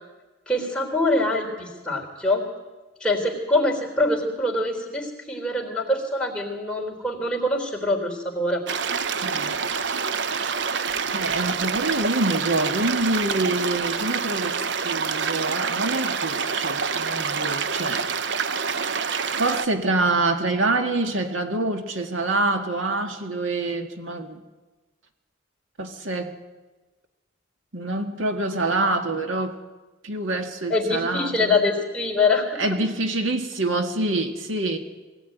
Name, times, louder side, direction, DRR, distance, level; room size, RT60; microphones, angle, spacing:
voice 1, 0.5-2.5 3.0-8.6 30.7-32.6, left 2 dB, 5° left, 0 dB, 3.6 m, -24 dB
sound 1, 8.7-19.7, right 5 dB, 60° right, 0.7 m, -27 dB
voice 2, 9.2-9.6 11.1-18.1 19.4-24.4 25.8-26.4 27.7-29.6 30.0-31.6 32.6-34.8, right 2 dB, 80° right, 5 dB, 1.9 m, -26 dB
22.5 x 17.5 x 9.3 m, 1.2 s
head